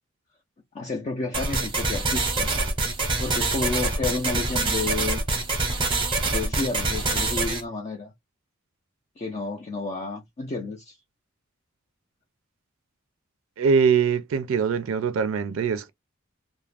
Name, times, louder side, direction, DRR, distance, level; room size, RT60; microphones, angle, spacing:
voice 1, 0.7-2.5 3.2-5.2 6.2-8.1 9.2-11.0, left 3 dB, 35° left, 0.4 m, -31 dB
sound 1, 1.3-7.6, right 3 dB, 25° right, 0.7 m, -25 dB
voice 2, 13.6-15.9, right 6 dB, 75° right, 0.4 m, -22 dB
2.4 x 2.1 x 3.3 m
head